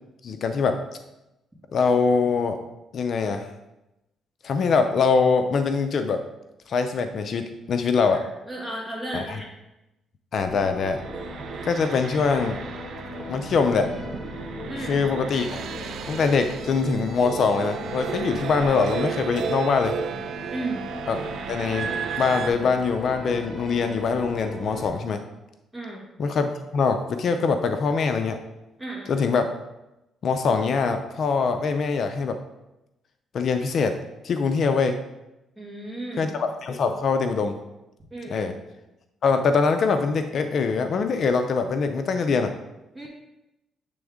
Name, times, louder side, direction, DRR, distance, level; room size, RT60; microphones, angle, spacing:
voice 1, 0.2-0.8 1.7-2.6 2.9-3.5 4.4-6.2 6.7-8.2 9.1-9.4 10.3-11.0 11.6-12.6 13.3-13.9 14.9-15.6 16.1-20.0 21.1-21.2 21.5-25.2 26.2-28.4 29.1-29.5 30.2-32.4 33.3-34.0 34.2-35.0 36.2-37.6 38.3-38.5 39.2-42.5, left 5 dB, 60° left, 7 dB, 0.4 m, -23 dB
voice 2, 8.5-9.5 14.7-15.0 20.5-20.8 25.7-26.0 28.8-29.1 35.6-36.3 38.1-38.5 42.9-43.1, right 2 dB, 15° right, -3 dB, 2.0 m, -34 dB
sound 1, 10.4-24.9, left 1 dB, 30° right, 2.2 m, -38 dB
sound 2, 10.9-22.5, right 6 dB, 70° right, 0.3 m, -34 dB
7.6 x 3.4 x 3.6 m, 0.94 s
cardioid pair, 90°, 0 cm